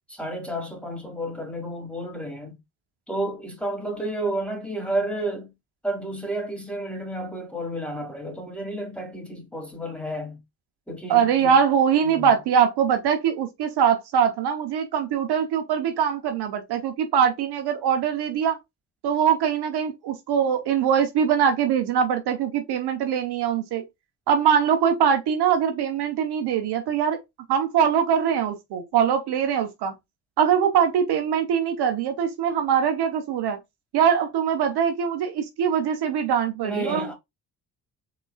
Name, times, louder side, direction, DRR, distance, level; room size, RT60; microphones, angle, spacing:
voice 1, 0.1-2.6 3.1-5.5 5.8-10.4 10.9-11.6 12.0-12.3 36.6-37.1, right 1 dB, 5° left, 2.4 m, -31 dB
voice 2, 11.1-18.6 19.0-23.8 24.3-27.2 27.5-29.9 30.4-33.6 33.9-37.1, right 8 dB, 70° right, 0.9 m, -22 dB
4.1 x 3.8 x 2.3 m
hypercardioid pair, 50°, 41 cm